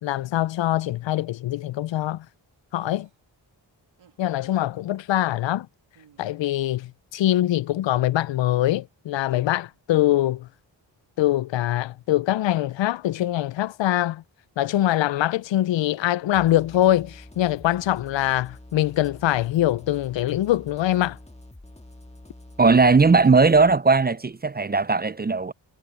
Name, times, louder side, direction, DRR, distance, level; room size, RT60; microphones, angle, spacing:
voice 1, 0.0-2.3 2.7-3.1 4.2-5.7 6.2-10.5 11.2-14.2 14.6-21.2, left 14 dB, 70° left, 0.5 m, -23 dB
sound 1, 2.7-3.2 4.0-4.2 5.9-6.3, right 8 dB, 80° right, 2.2 m, -54 dB
sound 2, 16.3-23.7, left 1 dB, 15° left, 1.9 m, -46 dB
voice 2, 22.6-25.5, right 4 dB, 20° right, 0.5 m, -18 dB
cardioid pair, 50°, 46 cm